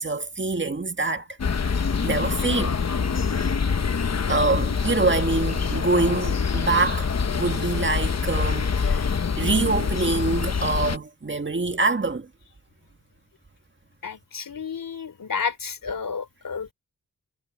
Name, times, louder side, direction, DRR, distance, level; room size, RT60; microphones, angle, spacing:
voice 1, 0.0-1.6 2.0-2.8 4.3-9.0 9.4-12.3, right 3 dB, 35° right, 1.9 m, -25 dB
sound 1, 1.4-11.0, left 5 dB, 50° left, 1.1 m, -25 dB
voice 2, 14.0-16.7, left 6 dB, 70° left, 3.3 m, -31 dB
wide cardioid pair, 70°, 34 cm